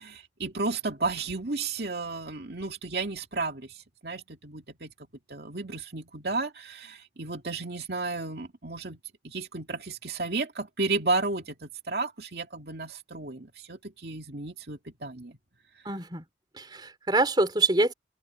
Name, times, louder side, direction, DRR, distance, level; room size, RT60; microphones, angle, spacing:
voice 1, 0.0-4.9 5.3-9.0 9.2-15.4, right 3 dB, 65° right, 2.3 m, -33 dB
voice 2, 15.9-16.2 16.6-17.9, right 2 dB, 25° right, 3.9 m, -25 dB
head